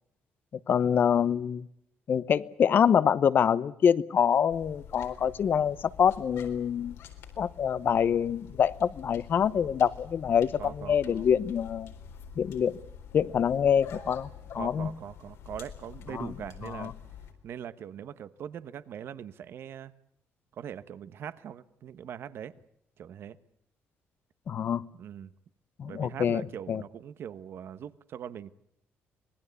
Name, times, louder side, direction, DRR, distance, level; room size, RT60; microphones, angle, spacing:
voice 1, 0.7-1.7 2.1-7.0 7.4-11.9 12.4-12.8 13.1-14.3 14.5-14.9 16.1-16.3 16.8-16.9 24.5-24.8 25.8-26.8, left 8 dB, 50° left, 17 dB, 0.9 m, -25 dB
sound 1, 4.5-17.3, left 8 dB, 85° left, 4.1 m, -47 dB
voice 2, 10.6-11.2 14.5-16.9 17.4-19.9 20.5-22.5 23.0-23.4 25.0-25.3 25.9-28.5, right 9 dB, 65° right, 14 dB, 1.2 m, -41 dB
25.5 x 19.5 x 8.3 m, 0.73 s
cardioid pair, 115°, 4 cm